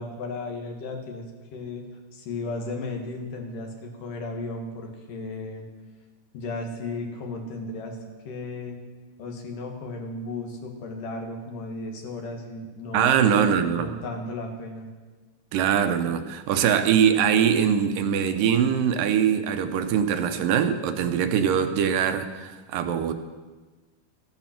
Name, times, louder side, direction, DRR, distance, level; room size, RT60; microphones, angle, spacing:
voice 1, 0.0-1.8 2.1-5.6 6.3-8.0 8.2-8.8 9.2-14.9, left 2 dB, 70° left, 2 dB, 3.2 m, -35 dB
voice 2, 12.9-13.9 15.5-23.1, right 8 dB, 80° right, 8 dB, 2.5 m, -22 dB
14.5 x 11.5 x 5.9 m, 1.3 s
omnidirectional pair, 3.9 m